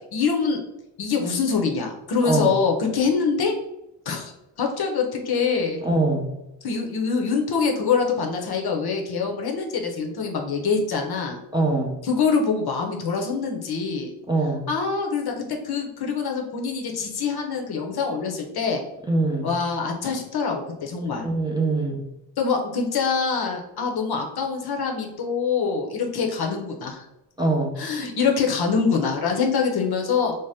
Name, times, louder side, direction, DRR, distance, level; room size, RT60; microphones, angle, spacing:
voice 1, 0.1-0.6 1.0-3.5 4.1-4.3 4.6-5.8 6.6-11.4 12.0-14.1 14.7-18.8 19.4-21.3 22.4-27.1 27.8-30.3, left 5 dB, 55° left, 2 dB, 0.7 m, -24 dB
voice 2, 5.8-6.3 11.5-11.9 14.3-14.7 19.1-19.5 21.2-22.0 27.4-27.7, right 2 dB, 10° right, -2 dB, 0.5 m, -23 dB
2.7 x 2.1 x 3.3 m, 0.89 s
cardioid pair, 70°, 47 cm